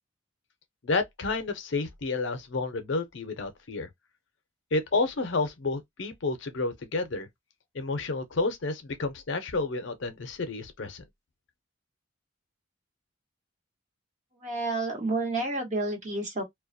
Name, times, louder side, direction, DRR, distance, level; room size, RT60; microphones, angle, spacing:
voice 1, 0.8-3.9 4.7-7.3 7.7-11.0, left 3 dB, 65° left, 0.6 m, -30 dB
voice 2, 14.4-16.4, right 2 dB, 40° right, 1.1 m, -30 dB
2.3 x 2.1 x 2.5 m
head